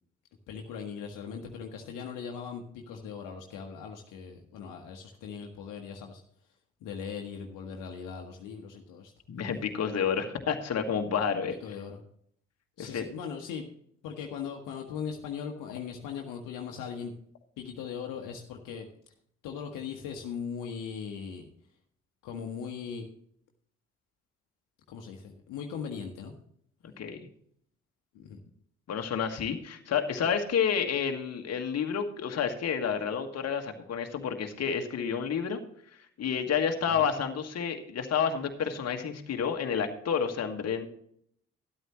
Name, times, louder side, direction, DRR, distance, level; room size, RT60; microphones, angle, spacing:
voice 1, 0.5-6.2 6.8-9.1 11.6-12.0 12.8-13.7 14.0-17.1 17.6-18.9 19.4-21.5 22.2-23.1 24.9-26.3 28.1-28.4 36.9-37.0, left 6 dB, 65° left, 3 dB, 1.3 m, -39 dB
voice 2, 9.3-11.6 12.8-13.1 27.0-27.3 28.9-35.6 36.2-40.9, left 7 dB, 50° left, 5 dB, 1.6 m, -30 dB
12.5 x 12.0 x 3.0 m, 0.66 s
figure-of-eight pair, 45°, 34 cm